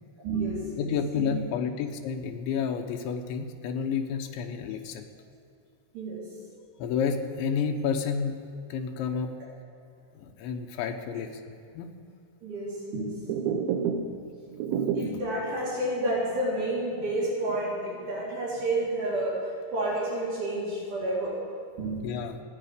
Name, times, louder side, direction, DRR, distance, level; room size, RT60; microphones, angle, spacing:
voice 1, 0.2-0.9 1.3-1.4 5.9-6.2 12.4-13.1 14.0-14.1 14.9-19.4 19.7-21.4 21.8-22.0, right 1 dB, 60° right, -7 dB, 5.7 m, -30 dB
voice 2, 0.8-5.1 6.8-9.3 10.1-11.9 22.0-22.4, left 6 dB, 75° left, 4 dB, 3.3 m, -30 dB
sound 1, 13.2-14.2 14.5-15.3 15.7-15.8 16.2-16.3 16.8-18.2 18.6-19.2, right 6 dB, 85° right, 2.1 m, -30 dB
27.0 x 9.5 x 5.1 m, 2.5 s
omnidirectional pair, 5.6 m